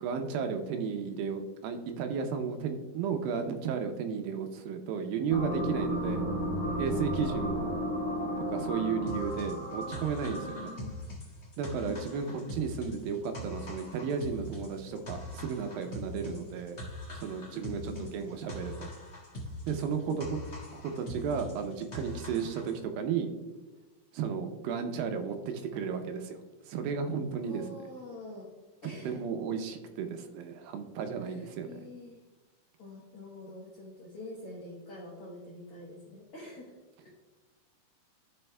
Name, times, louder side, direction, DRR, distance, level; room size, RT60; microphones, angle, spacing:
voice 1, 0.0-6.3 6.8-7.7 8.5-10.7 11.6-16.8 17.1-18.9 19.7-20.4 20.7-23.3 24.1-27.6 28.8-31.8, right 6 dB, 80° right, 6 dB, 2.3 m, -34 dB
sound 1, 5.3-10.9, equal, 30° left, 1.8 m, -33 dB
voice 2, 7.1-7.5 10.4-11.0 11.7-12.6 16.2-16.4 17.5-18.1 20.1-20.4 27.4-28.5 28.8-29.2 31.2-32.2 32.8-36.8 37.0-37.1, left 2 dB, 75° left, -4 dB, 1.3 m, -47 dB
sound 2, 9.1-22.8, left 1 dB, 90° left, 0.5 m, -42 dB
13.5 x 5.5 x 2.2 m, 1.2 s
omnidirectional pair, 4.3 m